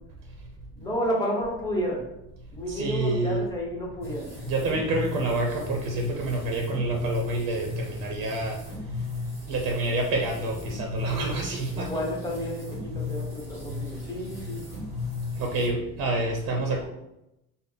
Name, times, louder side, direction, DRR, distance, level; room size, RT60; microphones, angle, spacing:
voice 1, 0.8-2.0 2.5-4.3 11.0-11.3 11.7-14.6, equal, 10° left, -3 dB, 0.9 m, -31 dB
voice 2, 2.7-3.4 4.4-8.6 9.5-11.9 15.4-16.9, right 2 dB, 85° right, 1 dB, 0.7 m, -28 dB
sound 1, 4.0-15.7, left 4 dB, 10° right, 1.5 m, -36 dB
3.8 x 2.1 x 3.4 m, 0.86 s
cardioid pair, 155°, 33 cm